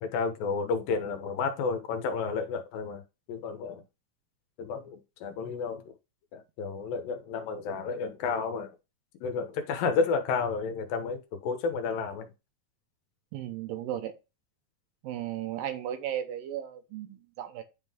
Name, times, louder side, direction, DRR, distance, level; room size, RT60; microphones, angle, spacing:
voice 1, 0.0-3.0 3.3-3.8 4.6-5.9 6.3-8.7 9.2-12.3, left 5 dB, 80° left, 2.7 m, -31 dB
voice 2, 13.3-14.1 15.0-17.6, right 11 dB, 80° right, 2.6 m, -35 dB
10.0 x 3.7 x 3.5 m
omnidirectional pair, 4.0 m